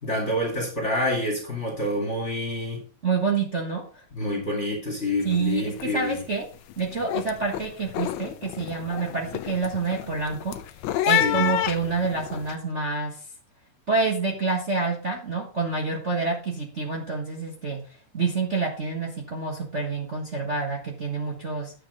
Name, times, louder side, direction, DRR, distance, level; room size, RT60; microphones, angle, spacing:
voice 1, 0.0-2.8 4.2-6.2 11.2-11.6, left 1 dB, 25° left, 0 dB, 2.5 m, -27 dB
voice 2, 3.0-4.0 5.2-6.4 6.8-10.5 11.1-13.2 13.9-17.8 18.1-21.7, right 4 dB, 35° right, -2 dB, 1.2 m, -27 dB
sound 1, 5.2-5.5 5.7-6.2 6.6-12.5, left 13 dB, 80° left, 2.0 m, -29 dB
9.9 x 7.3 x 4.0 m, 0.39 s
omnidirectional pair, 3.3 m